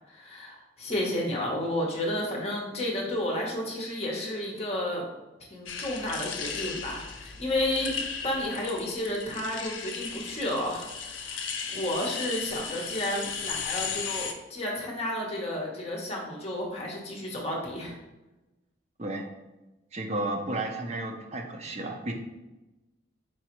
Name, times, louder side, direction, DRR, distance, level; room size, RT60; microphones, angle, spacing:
voice 1, 0.1-5.1 5.5-11.4 11.7-18.0, left 1 dB, 35° left, -1 dB, 0.9 m, -32 dB
sound 1, 5.7-14.3, left 6 dB, 80° left, 0.5 m, -36 dB
voice 2, 19.9-22.1, right 2 dB, 35° right, 2 dB, 0.5 m, -32 dB
4.8 x 3.1 x 2.9 m, 1.0 s
head